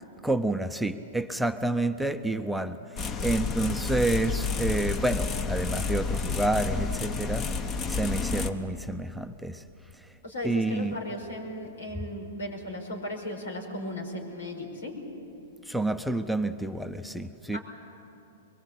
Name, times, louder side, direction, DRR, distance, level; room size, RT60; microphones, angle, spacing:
voice 1, 0.2-2.8 3.2-7.5 7.9-9.6 10.4-11.0 15.7-17.6, right 2 dB, ahead, 7 dB, 0.7 m, -29 dB
sound 1, 3.0-8.5, left 4 dB, 30° left, 1.1 m, -30 dB
voice 2, 10.2-15.0 17.5-17.6, left 1 dB, 90° left, 1 dB, 5.3 m, -36 dB
23.0 x 21.5 x 8.4 m, 2.8 s
hypercardioid pair, 130°, 0 cm